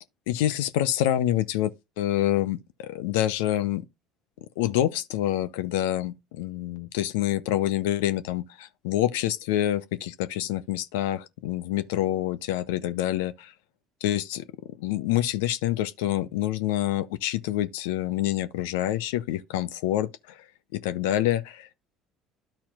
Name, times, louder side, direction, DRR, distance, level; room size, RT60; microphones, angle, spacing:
voice 1, 0.3-1.7 2.0-3.8 4.6-13.5 14.0-14.5 14.8-20.4 20.7-21.7, left 13 dB, 75° left, 0.6 m, -27 dB
13.0 x 4.3 x 2.4 m
hypercardioid pair, 65°, 0 cm